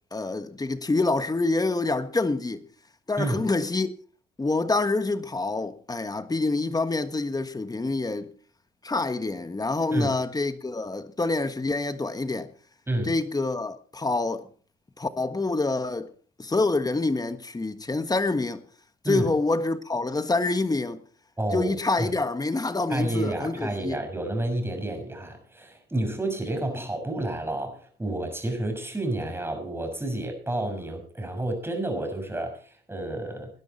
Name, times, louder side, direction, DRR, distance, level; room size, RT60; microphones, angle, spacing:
voice 1, 0.1-2.6 3.1-3.9 4.4-8.3 8.8-12.5 13.0-14.5 15.0-16.1 16.4-18.6 19.1-21.0 21.5-24.0, left 3 dB, 20° left, 1.4 m, -26 dB
voice 2, 21.4-22.1 22.9-33.5, right 1 dB, 10° right, 6.1 m, -30 dB
19.0 x 10.5 x 4.3 m
cardioid pair, 90°, 20 cm